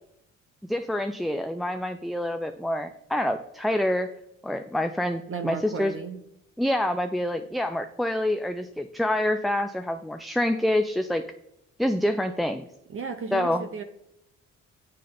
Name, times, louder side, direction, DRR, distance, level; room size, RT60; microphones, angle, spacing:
voice 1, 0.7-4.1 4.4-5.9 6.6-11.2 11.8-12.6 13.3-13.7, left 1 dB, ahead, 7 dB, 0.4 m, -27 dB
voice 2, 5.3-6.2 12.9-13.8, right 5 dB, 45° right, 8 dB, 0.8 m, -34 dB
7.5 x 6.6 x 3.8 m, 0.80 s
cardioid pair, 90°, 30 cm